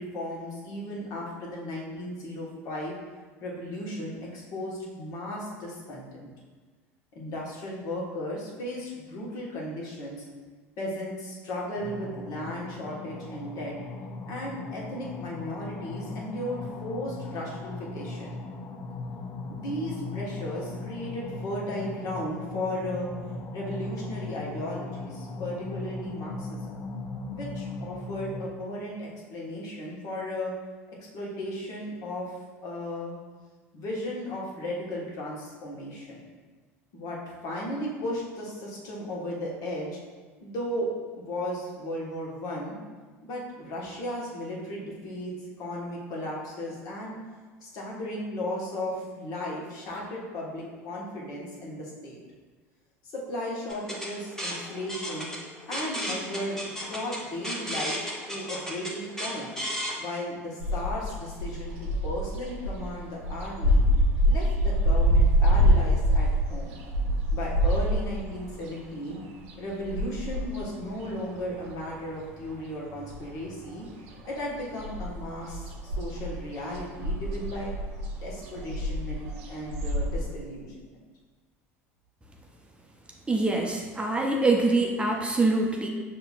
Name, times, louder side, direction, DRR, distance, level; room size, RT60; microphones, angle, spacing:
voice 1, 0.0-3.0 3.4-6.3 7.1-10.2 10.8-13.8 14.3-18.4 19.5-23.1 23.5-26.8 27.3-30.5 31.1-32.3 32.6-33.2 33.7-36.2 36.9-40.0 40.4-40.9 41.2-42.8 43.2-47.2 47.6-52.2 53.0-55.3 55.7-58.0 58.3-59.5 60.0-63.8 64.2-66.8 67.3-69.2 69.6-73.8 74.2-77.7 78.2-81.0, left 1 dB, 55° left, -4 dB, 1.4 m, -35 dB
sound 1, 11.8-28.4, left 3 dB, 35° left, 0.5 m, -38 dB
sound 2, 53.7-59.9, equal, 5° left, 1.2 m, -34 dB
sound 3, 60.6-72.2 72.5-73.8 74.1-80.2, equal, 70° right, 0.7 m, -26 dB
voice 2, 83.3-85.9, right 2 dB, 15° right, 0 dB, 0.6 m, -24 dB
6.6 x 2.9 x 2.4 m, 1.4 s
hypercardioid pair, 75°, 8 cm